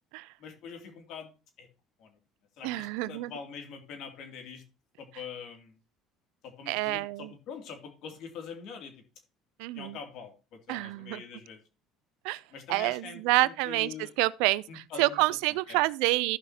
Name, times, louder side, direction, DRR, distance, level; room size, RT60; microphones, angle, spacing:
voice 1, 0.4-1.3 1.6-1.7 2.0-2.2 2.6-4.6 5.0-5.7 6.4-8.9 9.7-11.6 12.5-14.1 14.7-15.2 15.7-15.8, left 6 dB, 65° left, 2.7 m, -44 dB
voice 2, 2.6-3.3 6.7-7.3 9.6-10.0 10.7-11.2 12.2-12.4 12.7-16.4, right 20 dB, 85° right, 0.4 m, -28 dB
14.5 x 5.8 x 2.9 m
cardioid pair, 115°, 0 cm